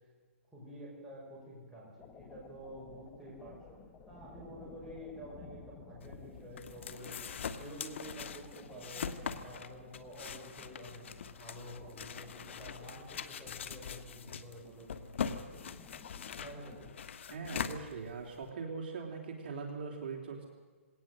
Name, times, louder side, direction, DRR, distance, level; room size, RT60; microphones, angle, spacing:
voice 1, 0.5-15.7 16.3-16.9, equal, 5° right, -7 dB, 5.8 m, -49 dB
sound 1, 2.0-16.9, left 5 dB, 15° left, 1.4 m, -56 dB
sound 2, 6.0-18.5, left 7 dB, 60° left, 1.4 m, -42 dB
voice 2, 17.3-20.5, right 4 dB, 45° right, 1 dB, 3.5 m, -41 dB
20.0 x 18.0 x 7.7 m, 1.5 s
hypercardioid pair, 160°, 7 cm